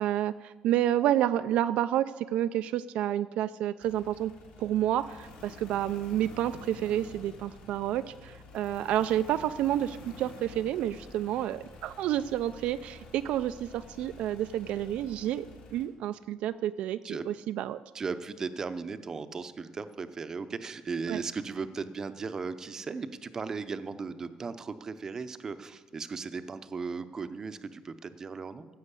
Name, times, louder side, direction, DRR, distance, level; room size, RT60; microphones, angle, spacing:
voice 1, 0.0-4.3 4.6-17.0 17.3-17.8 21.1-21.2, right 12 dB, 70° right, 12 dB, 0.4 m, -29 dB
sound 1, 3.8-15.9, left 3 dB, 85° left, 3.2 m, -50 dB
voice 2, 17.9-28.7, right 5 dB, 25° right, 11 dB, 0.6 m, -36 dB
15.0 x 6.3 x 8.2 m, 1.3 s
cardioid pair, 150°, 2 cm